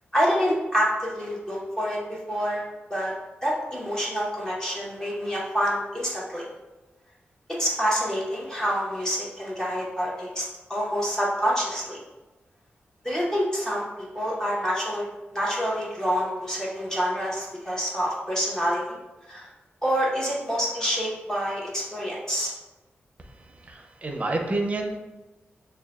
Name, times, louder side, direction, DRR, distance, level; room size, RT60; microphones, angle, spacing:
voice 1, 0.1-2.6 2.9-3.1 3.4-6.4 7.6-12.0 13.0-13.8 14.1-15.0 15.3-19.0 19.3-19.5 19.8-22.5, equal, 15° left, -5 dB, 1.1 m, -27 dB
voice 2, 23.3-25.0, right 2 dB, 35° right, 2 dB, 0.6 m, -29 dB
6.3 x 2.3 x 2.4 m, 1.1 s
wide cardioid pair, 90°, 4 cm